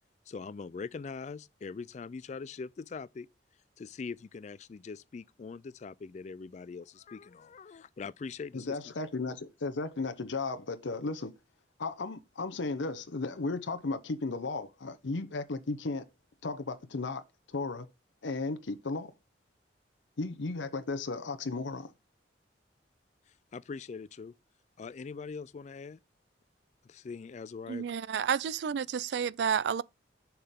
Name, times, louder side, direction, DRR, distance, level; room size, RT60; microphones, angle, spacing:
voice 1, 0.3-3.3 3.8-8.8 23.5-24.3 24.8-26.0 26.8-27.8, left 4 dB, 40° left, 0.3 m, -42 dB
voice 2, 8.5-11.3 11.8-16.1 16.4-17.2 17.5-17.9 18.2-19.1 20.2-21.9, left 3 dB, 80° left, 0.7 m, -35 dB
voice 3, 27.7-29.8, right 7 dB, 65° right, 0.3 m, -30 dB
6.8 x 5.7 x 3.6 m
head